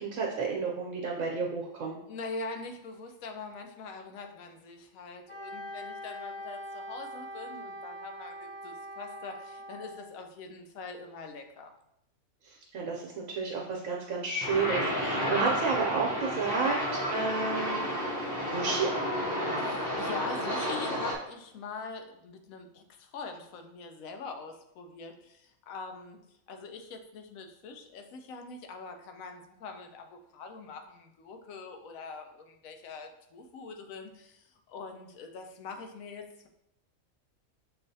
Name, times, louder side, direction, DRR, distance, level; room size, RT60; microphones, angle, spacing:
voice 1, 0.0-2.0 12.4-18.1 18.5-19.0, right 4 dB, 75° right, -2 dB, 1.0 m, -31 dB
voice 2, 2.1-11.7 19.6-26.2 26.5-36.5, left 4 dB, 85° left, 5 dB, 1.0 m, -43 dB
Wind instrument woodwind instrument, 5.3-10.1, equal, 5° right, 1.5 m, -42 dB
sound 1, 14.4-21.2, equal, 50° left, 1.0 m, -31 dB
6.7 x 2.5 x 2.6 m, 0.80 s
omnidirectional pair, 1.4 m